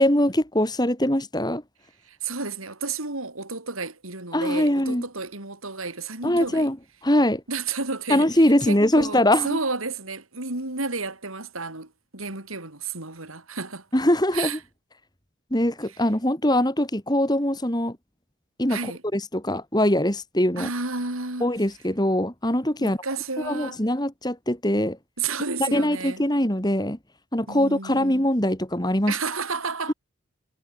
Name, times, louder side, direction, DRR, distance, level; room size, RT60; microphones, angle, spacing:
voice 1, 0.0-1.6 4.3-5.0 6.2-6.8 7.0-7.4 8.1-9.6 13.9-14.6 15.5-18.0 18.6-20.7 21.4-23.0 23.4-25.0 25.6-27.0 27.3-29.1, left 1 dB, 20° left, 3.2 m, -22 dB
voice 2, 2.1-6.7 7.5-8.3 8.6-13.9 14.3-14.6 18.7-19.0 20.6-21.5 22.8-23.8 25.2-26.3 27.5-28.2 29.1-29.9, right 4 dB, 85° right, 5.6 m, -31 dB
head